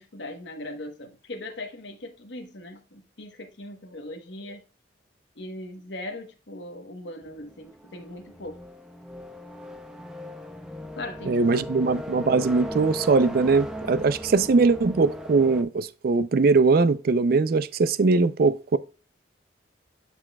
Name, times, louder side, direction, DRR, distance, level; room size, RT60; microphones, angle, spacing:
voice 1, 0.0-4.6 5.4-8.6 10.9-11.7, left 1 dB, 70° left, 1.1 m, -39 dB
sound 1, 7.2-15.6, left 1 dB, 5° right, 0.6 m, -38 dB
voice 2, 11.3-18.8, right 4 dB, 50° right, 0.4 m, -21 dB
12.0 x 4.3 x 2.2 m
head